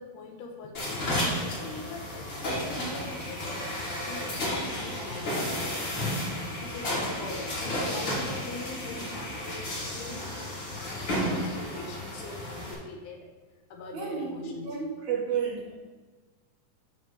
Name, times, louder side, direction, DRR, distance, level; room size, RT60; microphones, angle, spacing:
voice 1, 0.0-3.6 4.1-13.3 13.7-14.7, left 3 dB, 70° left, 1 dB, 2.2 m, -43 dB
sound 1, 0.7-12.7, left 1 dB, 40° left, 2.1 m, -32 dB
voice 2, 13.9-15.8, right 6 dB, 70° right, -2 dB, 1.9 m, -32 dB
9.5 x 3.3 x 6.6 m, 1.3 s
omnidirectional pair, 4.1 m